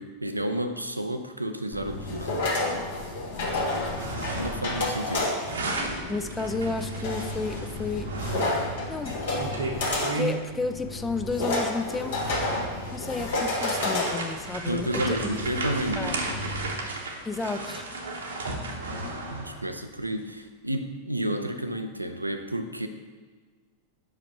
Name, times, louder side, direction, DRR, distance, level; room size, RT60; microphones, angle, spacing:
voice 1, 0.0-2.5 4.4-5.3 14.7-16.2 19.3-22.9, right 1 dB, 85° right, 8 dB, 0.4 m, -31 dB
sound 1, 1.7-16.7, left 2 dB, 60° left, 1.5 m, -31 dB
sound 2, 3.8-4.8 5.0-10.4 11.3-11.4 11.9-19.7, right 2 dB, 65° right, 0.9 m, -35 dB
voice 2, 6.1-8.1 8.9-9.2 10.0-12.3 12.9-15.3 16.0-16.1 17.2-17.9, left 3 dB, 10° left, 8 dB, 0.4 m, -32 dB
5.2 x 4.9 x 5.5 m, 1.5 s
figure-of-eight pair, 90°, 0 cm